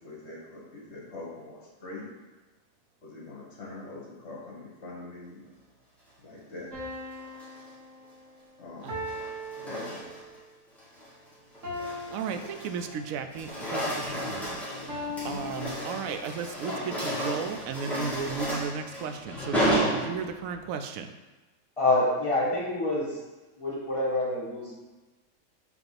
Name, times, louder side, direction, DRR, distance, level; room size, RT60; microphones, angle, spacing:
voice 1, 0.0-2.1 3.0-5.5 6.2-6.7 8.6-9.1 9.6-10.0 13.9-14.2 15.1-15.4, left 2 dB, 55° left, -3 dB, 1.9 m, -43 dB
sound 1, 6.7-10.5 11.6-13.2 14.9-16.4, left 1 dB, 65° right, 1.8 m, -40 dB
sound 2, 7.2-7.7 8.8-10.4 10.8-11.1 11.5-13.0 13.2-20.6, equal, ahead, 1.7 m, -33 dB
voice 2, 12.1-14.6 14.9-21.1, right 7 dB, 80° right, 8 dB, 1.0 m, -35 dB
voice 3, 21.8-23.2 23.6-24.8, left 2 dB, 25° left, -6 dB, 1.7 m, -27 dB
5.9 x 3.5 x 5.8 m, 1.2 s
omnidirectional pair, 1.4 m